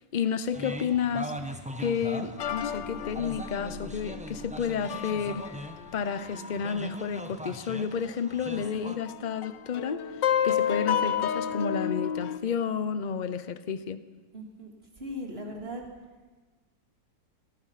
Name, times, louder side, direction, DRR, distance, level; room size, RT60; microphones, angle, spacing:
voice 1, 0.0-1.3 1.8-5.4 5.9-14.0, left 7 dB, 35° left, 13 dB, 0.7 m, -31 dB
sound 1, 0.5-9.0, right 1 dB, 5° right, 1.1 m, -41 dB
sound 2, 2.4-7.6 7.9-8.0 8.6-12.4, left 9 dB, 85° left, 1.7 m, -31 dB
voice 2, 14.3-14.7 15.0-15.8, equal, 35° right, 1 dB, 3.5 m, -38 dB
24.0 x 19.5 x 5.9 m, 1.3 s
omnidirectional pair, 1.9 m